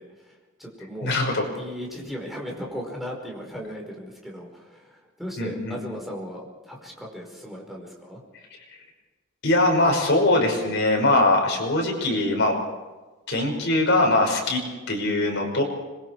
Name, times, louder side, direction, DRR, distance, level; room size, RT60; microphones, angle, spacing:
voice 1, 0.0-1.2 1.5-8.2, equal, ahead, -1 dB, 4.9 m, -37 dB
voice 2, 1.0-1.4 5.4-5.8 9.4-12.5 13.3-14.6 14.9-15.6, left 2 dB, 55° left, 0 dB, 5.8 m, -21 dB
26.0 x 22.0 x 4.8 m, 1.2 s
head